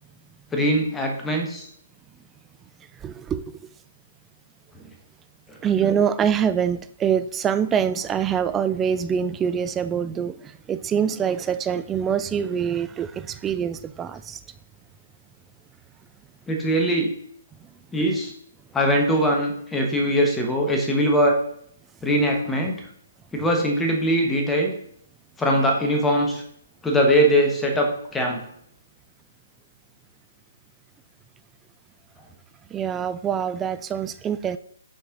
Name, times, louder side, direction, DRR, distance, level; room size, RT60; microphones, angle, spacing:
voice 1, 0.5-1.7 5.5-5.9 16.5-17.1 17.9-18.3 18.7-21.4 22.0-22.7 23.3-24.7 25.4-26.4 26.8-28.4, equal, 10° left, 2 dB, 1.2 m, -21 dB
voice 2, 3.0-3.7 5.6-14.4 17.6-17.7 32.7-34.6, right 8 dB, 15° right, 12 dB, 0.3 m, -25 dB
5.5 x 5.4 x 3.8 m, 0.67 s
figure-of-eight pair, 135°, 0 cm